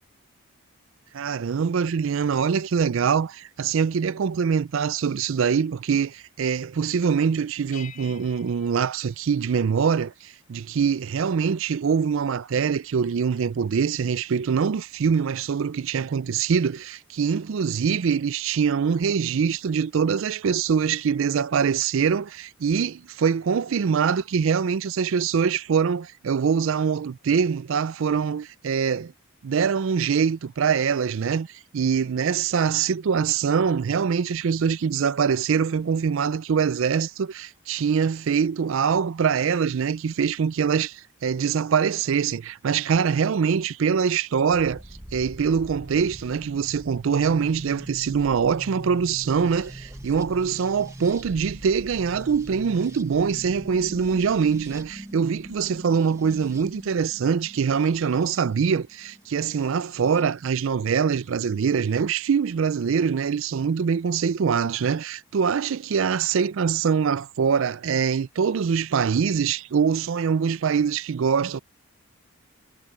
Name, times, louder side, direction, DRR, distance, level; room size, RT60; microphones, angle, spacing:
voice 1, 1.1-29.1 29.4-31.5 31.7-44.8 45.1-71.6, right 6 dB, 65° right, 0.4 m, -24 dB
sound 1, 7.7-9.9, left 8 dB, 35° left, 0.5 m, -48 dB
sound 2, 44.5-60.2 61.4-62.0, right 1 dB, 15° right, 1.1 m, -42 dB
head